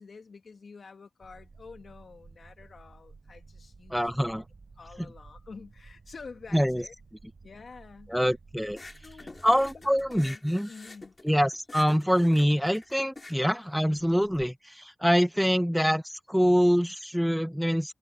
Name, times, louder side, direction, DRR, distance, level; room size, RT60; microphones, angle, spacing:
voice 1, 0.0-4.3 4.8-6.9 7.4-8.1 9.0-10.4 10.7-11.1, left 4 dB, 65° left, 2.7 m, -48 dB
sound 1, 1.2-10.3, right 4 dB, 55° right, 5.7 m, -53 dB
voice 2, 3.9-4.4 5.0-5.1 6.5-6.8 8.1-8.8 9.4-10.7 11.2-17.9, equal, ahead, 1.0 m, -25 dB
sound 2, 8.7-14.4, left 2 dB, 40° left, 3.1 m, -47 dB
cardioid pair, 45°, 0 cm